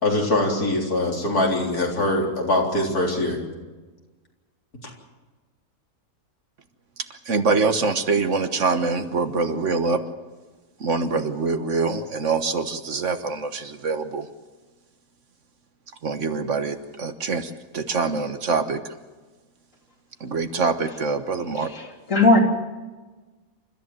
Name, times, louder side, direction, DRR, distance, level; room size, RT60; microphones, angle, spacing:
voice 1, 0.0-3.4, left 1 dB, 85° left, -1 dB, 4.4 m, -22 dB
voice 2, 7.2-10.0 10.8-14.3 16.0-18.9 20.2-21.7, right 4 dB, 55° right, 8 dB, 1.5 m, -24 dB
voice 3, 21.6-22.4, left 2 dB, 55° left, 1 dB, 3.4 m, -19 dB
29.0 x 13.5 x 7.7 m, 1.3 s
omnidirectional pair, 1.6 m